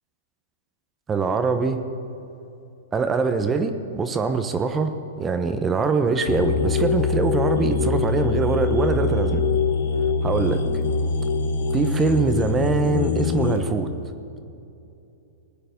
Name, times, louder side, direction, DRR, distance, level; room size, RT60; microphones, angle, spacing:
voice 1, 1.1-1.8 2.9-9.4 10.2-10.6 11.7-13.9, right 4 dB, 20° right, 8 dB, 1.0 m, -23 dB
sound 1, 6.3-13.6, left 5 dB, 75° left, 1.3 m, -23 dB
20.0 x 9.2 x 5.2 m, 2.7 s
hypercardioid pair, 125°, 0 cm